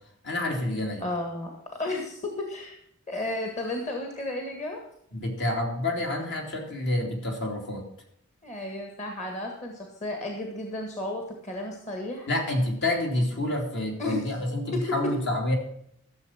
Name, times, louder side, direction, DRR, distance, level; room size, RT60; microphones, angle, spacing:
voice 1, 0.2-1.0 5.1-7.8 12.3-15.5, left 1 dB, 60° left, 1 dB, 3.1 m, -28 dB
voice 2, 1.0-2.8 3.1-4.8 8.4-12.3 14.0-14.2 14.7-14.8, left 1 dB, 35° left, 2 dB, 1.8 m, -33 dB
14.0 x 7.2 x 5.9 m, 0.71 s
head